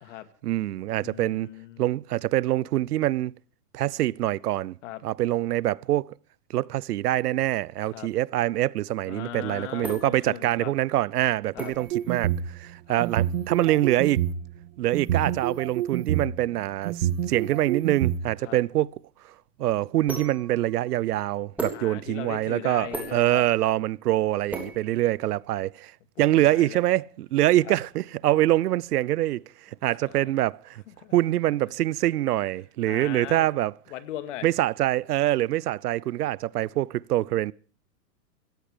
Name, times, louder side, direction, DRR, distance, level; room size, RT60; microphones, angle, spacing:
voice 1, 0.4-1.5 1.8-3.3 3.7-4.7 5.0-6.1 6.5-14.2 14.8-18.9 19.6-25.9 26.2-29.4 29.8-30.8 31.1-33.7 34.4-37.5, right 14 dB, 80° right, 0.7 m, -25 dB
voice 2, 1.0-1.8 4.8-5.0 7.9-8.1 9.1-10.7 11.5-11.7 12.9-13.1 18.4-18.6 21.7-23.4 26.2-26.8 27.6-27.7 29.8-30.2 30.9-31.1 32.8-33.5 33.9-34.5, left 13 dB, 50° left, 2.1 m, -39 dB
sound 1, 9.2-25.6, right 1 dB, 5° right, 3.3 m, -41 dB
sound 2, 11.8-12.5 13.0-14.4 14.9-16.2 16.8-18.1, right 12 dB, 55° right, 1.7 m, -26 dB
17.0 x 15.0 x 5.0 m
hypercardioid pair, 155°, 46 cm